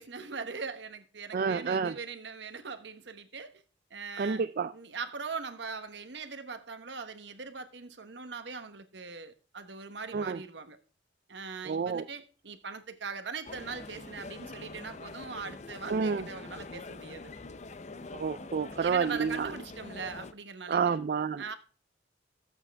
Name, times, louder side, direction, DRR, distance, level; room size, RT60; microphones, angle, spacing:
voice 1, 0.0-3.6 3.9-4.4 4.7-10.8 11.3-17.3 18.8-21.0 21.4-21.5, right 5 dB, 70° right, 1.1 m, -41 dB
voice 2, 1.3-2.0 4.2-4.7 10.1-10.4 11.7-12.0 15.9-16.2 18.1-19.5 20.7-21.4, right 5 dB, 50° right, 0.4 m, -29 dB
sound 1, 13.4-20.3, left 3 dB, 40° left, 0.7 m, -45 dB
14.5 x 8.2 x 3.5 m
head